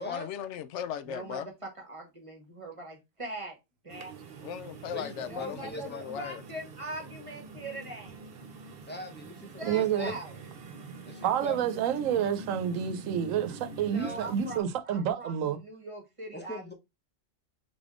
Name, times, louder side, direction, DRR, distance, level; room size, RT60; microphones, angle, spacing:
voice 1, 0.0-1.5 4.4-6.4, left 9 dB, 70° left, 0.8 m, -37 dB
voice 2, 1.0-3.5 3.8-4.4 5.2-8.2 9.6-10.4 13.8-16.6, right 1 dB, 25° right, 1.1 m, -42 dB
sound 1, 3.9-14.6, right 4 dB, 50° right, 0.9 m, -45 dB
voice 3, 4.9-6.2 8.9-10.2 11.0-11.6 13.8-14.2 16.3-16.7, left 1 dB, 10° left, 0.7 m, -41 dB
voice 4, 9.6-10.1 11.2-15.6, right 9 dB, 85° right, 1.0 m, -29 dB
4.0 x 3.5 x 3.6 m
omnidirectional pair, 1.3 m